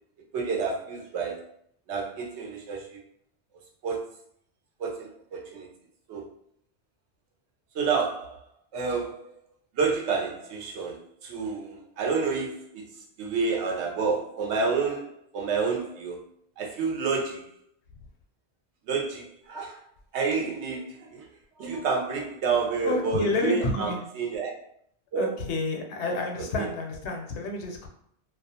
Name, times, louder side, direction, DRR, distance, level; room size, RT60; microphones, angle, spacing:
voice 1, 0.3-1.5 1.9-3.0 3.8-4.1 4.8-5.7 6.1-6.2 7.7-8.4 8.7-9.3 9.7-16.2 16.6-17.5 18.9-19.8 20.1-21.3 21.6-24.5 25.1-25.4 26.6-26.7, right 5 dB, 80° right, -1 dB, 0.9 m, -29 dB
voice 2, 22.8-24.1 25.2-27.9, left 3 dB, 85° left, 2 dB, 0.9 m, -29 dB
2.3 x 2.1 x 2.7 m, 0.67 s
omnidirectional pair, 1.1 m